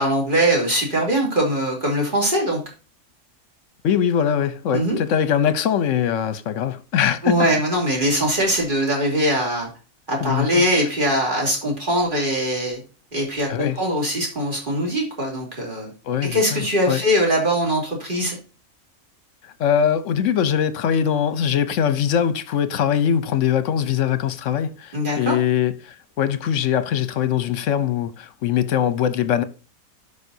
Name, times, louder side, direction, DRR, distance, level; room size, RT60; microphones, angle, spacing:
voice 1, 0.0-2.6 4.7-5.0 7.2-9.7 10.1-12.8 13.1-15.9 16.3-18.4 24.9-25.3, equal, 35° right, 3.1 m, -21 dB
voice 2, 3.8-7.3 10.2-10.6 13.5-13.8 16.0-17.0 19.6-29.4, left 9 dB, 60° left, 1.1 m, -22 dB
12.5 x 5.2 x 2.7 m
omnidirectional pair, 1.6 m